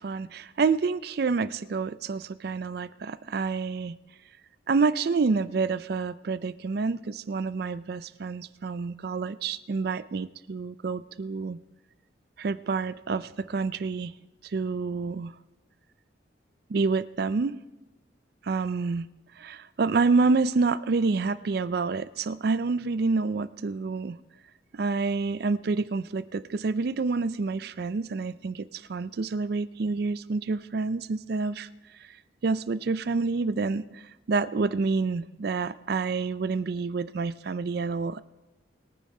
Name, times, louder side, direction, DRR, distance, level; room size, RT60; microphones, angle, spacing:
voice 1, 0.0-4.0 4.7-11.6 12.4-14.1 14.4-15.3 16.7-17.6 18.4-19.1 19.4-24.2 24.7-31.7 32.4-34.0 34.3-38.2, right 4 dB, 55° right, 15 dB, 0.4 m, -28 dB
22.0 x 9.4 x 3.8 m, 1.0 s
head